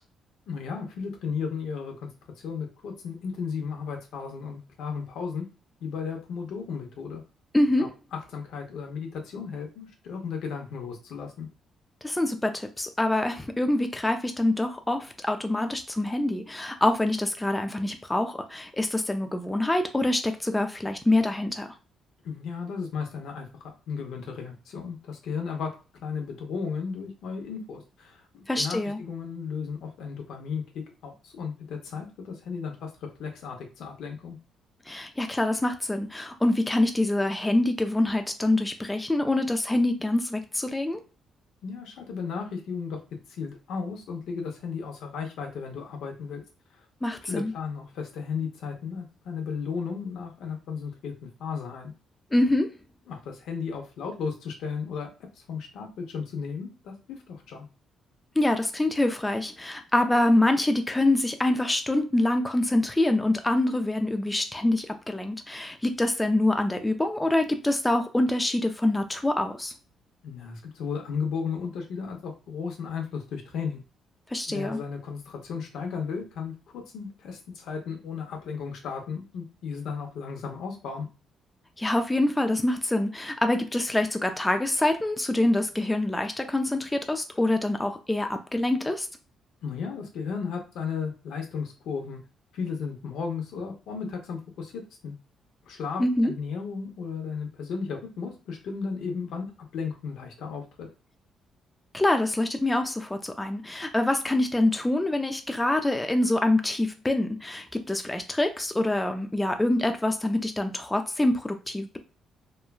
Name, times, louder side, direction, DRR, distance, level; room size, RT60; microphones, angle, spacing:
voice 1, 0.5-5.4 5.8-7.2 7.8-7.9 8.3-11.5 22.2-25.7 26.0-32.9 33.2-34.4 41.6-43.0 43.4-46.4 47.2-51.9 53.1-55.1 55.5-57.7 70.2-73.8 74.5-81.1 89.6-92.2 92.5-95.1 95.7-100.9, left 5 dB, 80° left, 2 dB, 0.7 m, -34 dB
voice 2, 7.5-7.9 12.0-21.7 28.5-29.0 34.9-41.0 47.0-47.5 52.3-52.7 58.4-69.7 74.3-74.8 81.8-89.1 96.0-96.3 101.9-112.0, left 1 dB, 10° left, 6 dB, 0.3 m, -25 dB
3.1 x 2.2 x 2.3 m, 0.32 s
cardioid pair, 90°, 0 cm